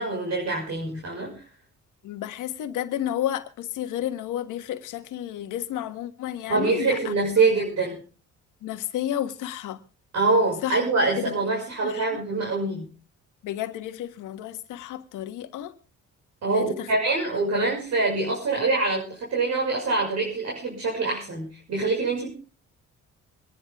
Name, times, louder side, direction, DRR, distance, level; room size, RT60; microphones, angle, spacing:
voice 1, 0.0-1.3 6.5-8.0 10.1-12.8 16.4-22.3, right 3 dB, 60° right, 6.3 m, -25 dB
voice 2, 2.0-7.1 8.6-9.8 10.6-10.9 11.2-11.3 11.8-12.2 13.4-15.7 16.5-16.9, left 11 dB, 85° left, 1.5 m, -31 dB
25.0 x 10.5 x 3.6 m
cardioid pair, 90°, 30 cm